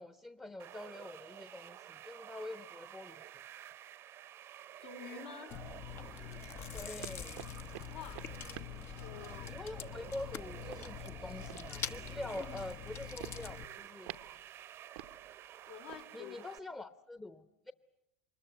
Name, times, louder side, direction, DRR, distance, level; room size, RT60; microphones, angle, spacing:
voice 1, 0.0-3.2 6.7-7.6 9.5-14.1 16.1-17.7, left 2 dB, 15° left, 12 dB, 0.9 m, -45 dB
sound 1, 0.6-16.6, right 11 dB, 45° right, 0.8 m, -51 dB
voice 2, 4.8-5.6 7.9-8.3 9.0-9.5 15.7-16.4, left 8 dB, 75° left, 3 dB, 3.5 m, -48 dB
Chewing mastication, 5.5-13.6, left 9 dB, 40° left, 0.9 m, -45 dB
sound 2, 6.3-16.0, right 13 dB, 75° right, 0.9 m, -52 dB
24.5 x 21.0 x 9.3 m, 0.86 s
hypercardioid pair, 90°, 6 cm